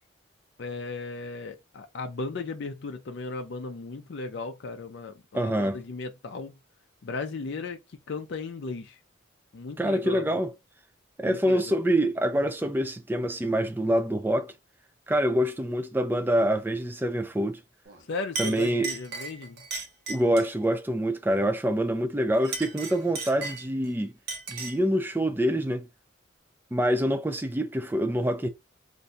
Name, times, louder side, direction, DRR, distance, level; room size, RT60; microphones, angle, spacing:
voice 1, 0.6-6.5 7.0-7.8 8.1-9.0 9.5-10.2 11.2-11.8 18.1-19.6, left 3 dB, 60° left, 0.4 m, -36 dB
voice 2, 5.3-5.8 9.8-10.5 11.2-14.5 15.1-17.6 18.4-18.9 20.1-24.1 24.5-25.9 26.7-28.5, equal, 10° right, 0.3 m, -26 dB
Chink clink, 17.8-18.0 18.3-20.6 22.3-23.9 24.3-24.9, right 4 dB, 50° right, 0.9 m, -36 dB
2.6 x 2.2 x 3.8 m
head